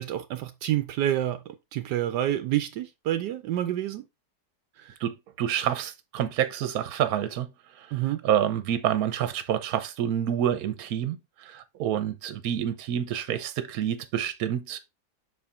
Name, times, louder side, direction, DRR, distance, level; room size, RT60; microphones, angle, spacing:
voice 1, 0.0-1.4 1.7-4.0 4.8-5.0 7.9-8.2, right 12 dB, 80° right, 1.2 m, -28 dB
voice 2, 5.0-7.5 7.7-7.9 8.2-14.8, right 10 dB, 65° right, 1.2 m, -28 dB
6.6 x 4.3 x 3.5 m
omnidirectional pair, 1.8 m